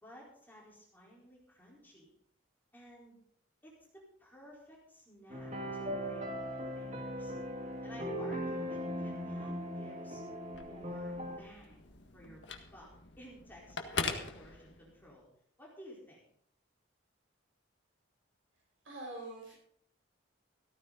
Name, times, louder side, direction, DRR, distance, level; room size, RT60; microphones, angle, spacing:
voice 1, 0.0-2.1 2.7-3.2 3.6-7.3 7.8-10.2 10.6-12.4 12.7-12.9 13.2-15.3 15.6-16.2, equal, 10° left, -4 dB, 4.5 m, -55 dB
sound 1, 5.3-11.4, equal, 35° right, 2.3 m, -39 dB
Telephone, 10.4-15.2, left 4 dB, 65° left, 1.8 m, -42 dB
voice 2, 18.8-19.5, right 2 dB, 80° right, -5 dB, 5.4 m, -44 dB
15.5 x 14.0 x 4.1 m, 0.64 s
head